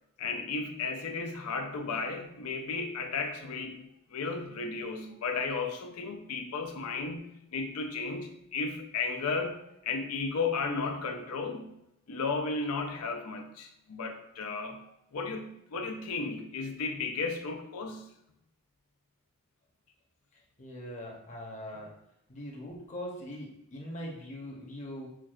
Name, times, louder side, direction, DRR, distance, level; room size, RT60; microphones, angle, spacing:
voice 1, 0.2-7.2 7.5-11.8 12.1-18.1, left 4 dB, 80° left, 4 dB, 0.5 m, -34 dB
voice 2, 20.6-21.9 22.3-25.1, equal, 30° left, -2 dB, 0.8 m, -41 dB
5.9 x 2.3 x 2.4 m, 0.81 s
head